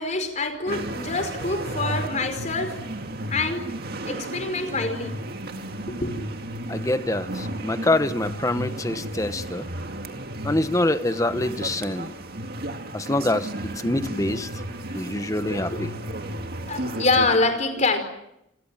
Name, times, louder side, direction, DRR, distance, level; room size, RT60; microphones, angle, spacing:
voice 1, 0.0-2.8 3.3-3.6 4.1-5.1 5.9-6.1 15.4-15.8 16.7-18.0, left 3 dB, 35° left, 8 dB, 4.8 m, -25 dB
sound 1, 0.7-17.4, right 1 dB, 50° right, 2.1 m, -33 dB
voice 2, 6.7-9.7 10.4-12.1 12.9-13.5 13.8-14.5 14.9-15.9, left 1 dB, 15° left, 11 dB, 1.1 m, -25 dB
29.0 x 21.5 x 7.5 m, 0.83 s
head